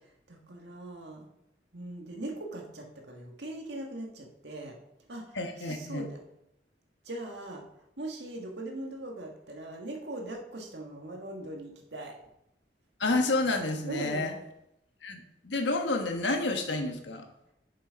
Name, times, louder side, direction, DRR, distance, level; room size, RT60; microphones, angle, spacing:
voice 1, 0.3-1.3 1.7-4.8 5.1-6.2 7.0-7.7 8.0-12.2 13.9-14.3, right 1 dB, 75° right, 1 dB, 1.8 m, -40 dB
voice 2, 5.3-6.1 13.0-14.3 15.0-17.3, left 2 dB, 90° left, 5 dB, 1.3 m, -29 dB
7.1 x 6.7 x 5.2 m, 0.81 s
head